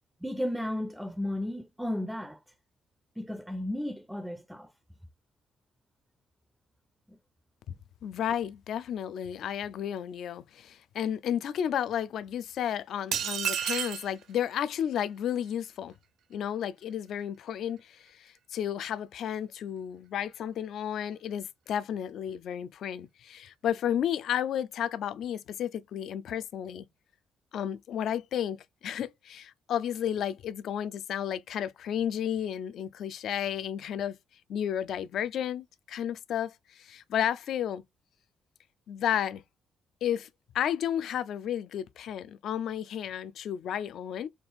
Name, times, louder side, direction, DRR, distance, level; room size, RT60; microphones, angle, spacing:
voice 1, 0.2-2.4 3.2-4.7 7.1-7.2, left 1 dB, ahead, 0.4 m, -34 dB
voice 2, 8.0-15.9 16.3-26.9 27.5-34.2 34.5-37.8 38.9-39.4 40.0-40.3 40.5-44.3, left 9 dB, 75° left, 0.4 m, -32 dB
sound 1, 13.1-14.1, right 9 dB, 75° right, 0.7 m, -30 dB
4.2 x 2.4 x 3.4 m
cardioid pair, 90°, 0 cm